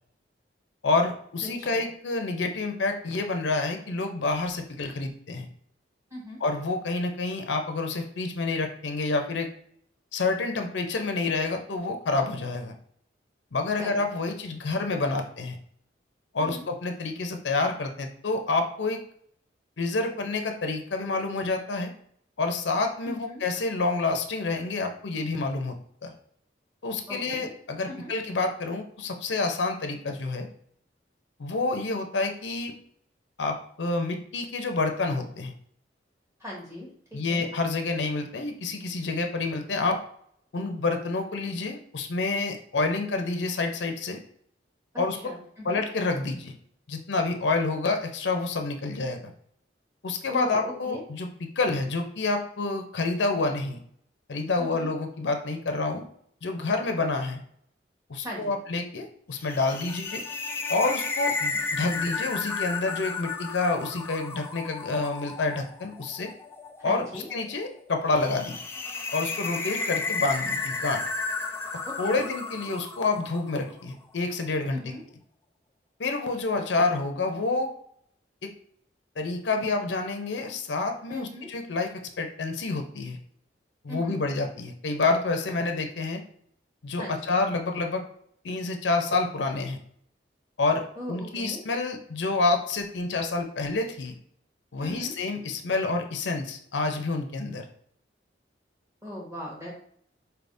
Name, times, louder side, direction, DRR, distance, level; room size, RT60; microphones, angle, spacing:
voice 1, 0.8-5.5 6.4-9.5 10.1-12.7 13.5-15.6 16.3-19.0 19.8-21.9 22.4-25.8 26.0-26.1 26.8-30.5 31.4-32.7 33.4-35.5 37.1-40.0 40.5-44.2 45.0-45.2 45.6-46.5 46.9-49.3 50.0-53.8 54.3-56.0 56.4-57.4 58.1-60.2 60.7-66.3 66.8-68.6 69.1-71.0 72.0-74.8 76.0-77.7 78.4-78.5 79.2-81.9 82.2-83.2 83.8-86.2 86.8-88.0 88.4-89.8 90.6-94.1 94.7-97.6, left 3 dB, 80° left, 5 dB, 0.6 m, -28 dB
voice 2, 1.4-1.9 6.1-6.4 13.8-14.0 16.4-16.6 23.0-23.4 27.1-27.5 27.8-28.1 36.4-36.9 37.3-37.5 44.9-45.8 50.3-51.0 54.6-54.9 58.2-58.5 66.8-67.3 71.8-72.3 74.7-75.0 81.1-81.5 83.9-84.2 87.0-87.3 91.0-91.6 94.8-95.1 99.0-99.7, left 1 dB, 15° right, -4 dB, 1.3 m, -39 dB
sound 1, 59.4-73.7, left 4 dB, 15° left, 0.3 m, -33 dB
4.4 x 3.4 x 2.6 m, 0.64 s
head